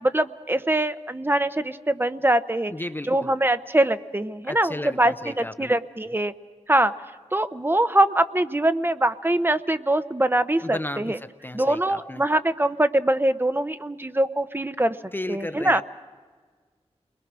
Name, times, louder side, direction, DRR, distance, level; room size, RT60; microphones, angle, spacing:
voice 1, 0.0-2.7 3.1-6.3 6.7-6.9 7.3-11.2 11.5-15.0 15.3-15.8, right 1 dB, 20° right, 12 dB, 0.7 m, -23 dB
voice 2, 2.7-3.4 4.5-5.7 10.6-12.2 15.1-15.8, left 1 dB, 20° left, 10 dB, 0.6 m, -34 dB
30.0 x 21.5 x 6.1 m, 1.5 s
wide cardioid pair, 95°, 11 cm